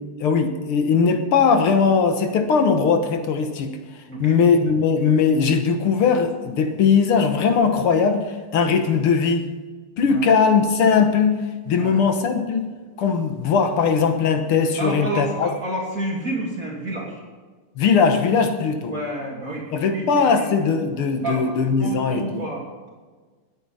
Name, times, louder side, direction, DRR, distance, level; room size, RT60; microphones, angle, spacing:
voice 1, 0.0-3.7 4.2-9.5 10.0-11.4 11.7-12.7 13.0-15.5 17.8-19.0 19.7-22.5, left 5 dB, 75° left, 6 dB, 2.2 m, -19 dB
voice 2, 4.1-4.4 10.0-10.3 11.7-12.0 14.8-17.2 18.9-20.5 21.2-21.5 21.8-22.9, right 1 dB, 40° right, -3 dB, 3.1 m, -30 dB
20.5 x 9.1 x 5.6 m, 1.4 s
omnidirectional pair, 2.4 m